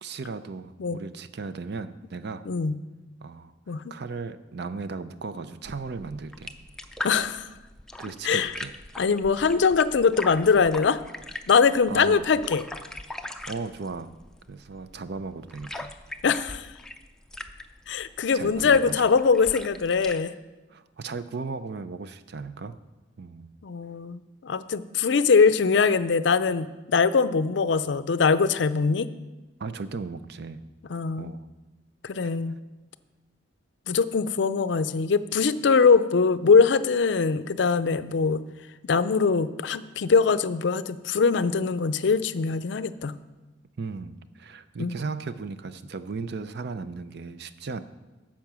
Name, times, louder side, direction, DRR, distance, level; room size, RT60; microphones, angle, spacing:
voice 1, 0.0-2.5 3.2-3.5 3.9-6.5 8.0-8.7 11.9-12.3 13.5-14.1 14.5-15.9 18.3-19.0 20.7-22.8 23.2-23.5 29.6-30.7 31.2-31.5 43.8-47.8, right 4 dB, 60° right, 13 dB, 0.5 m, -36 dB
voice 2, 2.5-2.8 3.7-3.8 7.0-7.5 8.2-8.5 9.0-11.0 11.5-12.6 16.2-16.7 17.9-20.3 23.6-29.1 30.9-31.3 32.0-32.6 33.9-38.4 38.8-43.1 44.8-45.0, left 5 dB, 70° left, 14 dB, 0.5 m, -22 dB
sound 1, 5.6-20.2, left 1 dB, 5° left, 0.5 m, -41 dB
10.5 x 7.3 x 6.0 m, 1.1 s
head